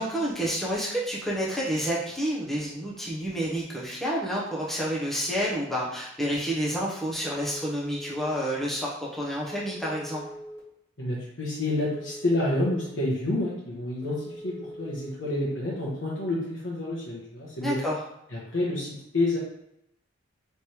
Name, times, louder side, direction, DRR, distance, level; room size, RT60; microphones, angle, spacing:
voice 1, 0.0-10.2 17.6-18.0, equal, ahead, -5 dB, 0.8 m, -29 dB
Telephone, 7.2-8.3 9.5-10.6 11.8-12.9 14.0-15.1, equal, 20° left, 1.7 m, -42 dB
voice 2, 11.0-17.8 18.3-19.4, left 1 dB, 70° left, -6 dB, 1.1 m, -29 dB
3.4 x 3.2 x 4.4 m, 0.81 s
head